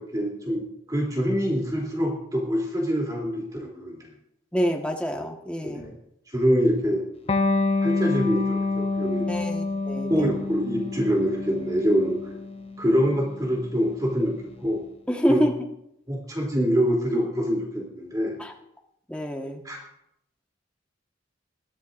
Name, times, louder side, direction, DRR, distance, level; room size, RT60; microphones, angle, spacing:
voice 1, 0.0-4.0 5.6-5.9 6.3-7.0 7.8-9.3 10.1-12.2 12.8-14.4 14.6-14.8 15.3-15.4 16.1-18.3 19.6-19.8, equal, 20° right, -2 dB, 3.2 m, -25 dB
voice 2, 4.5-5.8 9.3-10.3 15.1-15.5 18.4-18.5 19.1-19.6, equal, 5° left, 1 dB, 1.5 m, -26 dB
Electric guitar, 7.3-14.4, left 3 dB, 30° left, 0.8 m, -28 dB
21.0 x 13.0 x 2.6 m, 0.77 s
head